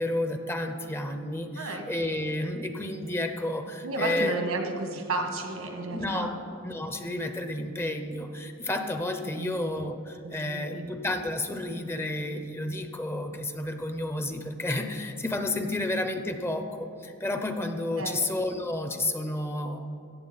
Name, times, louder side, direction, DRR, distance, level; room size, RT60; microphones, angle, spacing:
voice 1, 0.0-4.4 5.9-6.3 6.6-19.9, left 1 dB, 10° left, 6 dB, 0.5 m, -31 dB
voice 2, 3.8-6.4 9.3-9.6 10.2-10.8 18.0-18.2, right 2 dB, 85° right, 4 dB, 1.5 m, -32 dB
15.0 x 8.2 x 4.0 m, 2.6 s
head